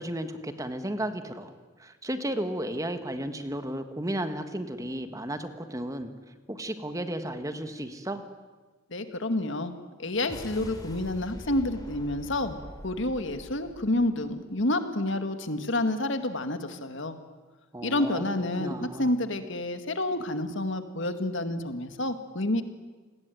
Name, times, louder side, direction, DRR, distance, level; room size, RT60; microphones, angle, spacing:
voice 1, 0.0-1.5 1.8-6.1 6.5-8.2 17.7-18.2 18.6-19.1, right 1 dB, 15° right, 8 dB, 1.6 m, -33 dB
voice 2, 8.9-9.7 10.0-12.6 12.8-17.2 17.8-22.6, left 1 dB, 65° left, 8 dB, 2.0 m, -29 dB
sound 1, 10.1-14.7, equal, 20° left, 3.6 m, -44 dB
28.5 x 19.5 x 9.3 m, 1.3 s
head